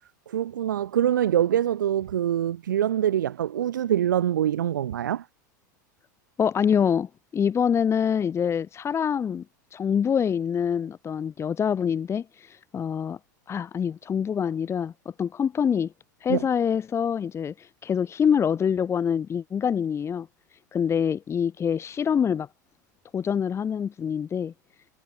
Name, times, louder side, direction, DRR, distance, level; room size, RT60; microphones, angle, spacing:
voice 1, 0.3-5.2 16.3-16.4, right 10 dB, 80° right, 2.9 m, -24 dB
voice 2, 6.4-9.4 9.7-13.2 13.5-15.9 16.2-20.3 20.7-22.5 23.1-24.5, left 7 dB, 25° left, 2.4 m, -25 dB
hypercardioid pair, 95°, 10 cm